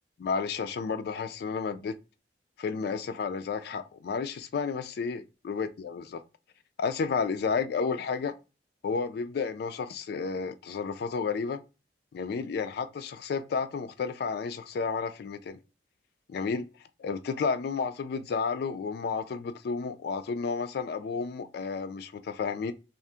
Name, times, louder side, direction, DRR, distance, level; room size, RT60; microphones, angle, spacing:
voice 1, 0.2-2.0 2.6-6.2 6.8-8.3 8.8-11.6 12.1-15.6 16.3-16.7 17.0-22.7, left 5 dB, 60° left, 0.3 m, -31 dB
2.7 x 2.5 x 3.4 m
head